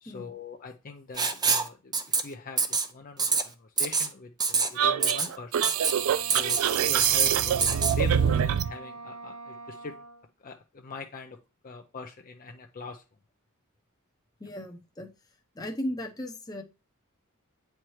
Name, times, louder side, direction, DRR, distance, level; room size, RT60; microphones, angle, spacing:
voice 1, 0.0-5.7 6.3-7.6 8.0-10.0 10.4-11.4 11.6-13.0, left 4 dB, 40° left, 4 dB, 0.5 m, -42 dB
Writing, 1.2-1.7 1.9-2.2 2.6-2.9 3.2-3.4 3.8-4.1 4.4-4.7 5.0-5.3 5.6-5.9 6.3-6.6 7.0-7.3 7.6-7.9, right 5 dB, 20° right, 0.5 m, -25 dB
sound 1, 4.8-8.7, right 9 dB, 70° right, 0.4 m, -25 dB
Wind instrument woodwind instrument, 5.7-10.3, right 2 dB, 90° right, 1.0 m, -43 dB
voice 2, 14.4-15.1 15.5-16.6, left 1 dB, 20° left, 3 dB, 0.8 m, -36 dB
8.8 x 4.5 x 3.2 m, 0.31 s
head